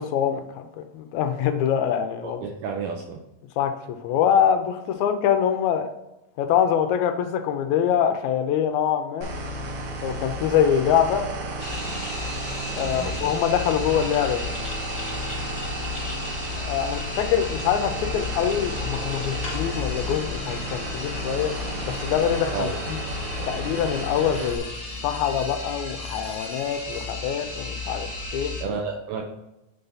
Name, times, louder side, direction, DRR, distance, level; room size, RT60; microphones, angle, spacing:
voice 1, 0.0-2.4 3.6-5.9 6.4-9.3 10.0-11.3 12.8-14.5 16.6-21.5 21.9-23.0 23.4-24.6 25.0-28.5, left 8 dB, 85° left, 6 dB, 1.6 m, -24 dB
voice 2, 2.2-3.2 12.8-13.2 22.5-22.7 23.4-23.5 28.6-29.2, right 6 dB, 75° right, 1 dB, 2.2 m, -31 dB
sound 1, 9.2-24.6, equal, 60° right, 1.6 m, -33 dB
sound 2, 11.6-28.6, left 2 dB, 30° left, 1.4 m, -34 dB
6.7 x 4.0 x 5.5 m, 0.91 s
omnidirectional pair, 4.1 m